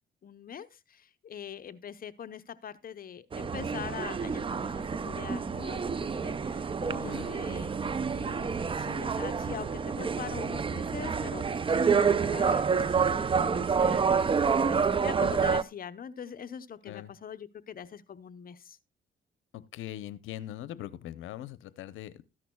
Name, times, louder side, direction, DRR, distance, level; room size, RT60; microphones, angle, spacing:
voice 1, 0.2-8.5 8.7-18.8, left 8 dB, 45° left, 0.8 m, -43 dB
sound 1, 3.3-15.6, right 6 dB, 25° right, 0.5 m, -28 dB
voice 2, 7.0-7.4 16.8-17.1 19.5-22.2, left 12 dB, 85° left, 0.7 m, -41 dB
14.0 x 10.5 x 2.2 m
cardioid pair, 90°, 20 cm